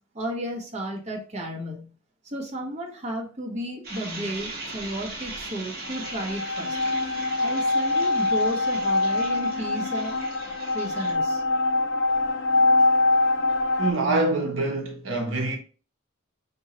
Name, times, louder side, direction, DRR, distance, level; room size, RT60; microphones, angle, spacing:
voice 1, 0.1-1.9 2.2-6.8 7.4-10.1 10.7-11.4, equal, 35° right, 1.0 m, -33 dB
sound 1, 3.8-11.1, right 2 dB, 50° right, 1.3 m, -39 dB
sound 2, 5.8-13.9, left 2 dB, 65° left, 0.6 m, -24 dB
voice 2, 13.8-15.6, right 2 dB, 70° right, 0.9 m, -25 dB
5.3 x 2.8 x 3.0 m
head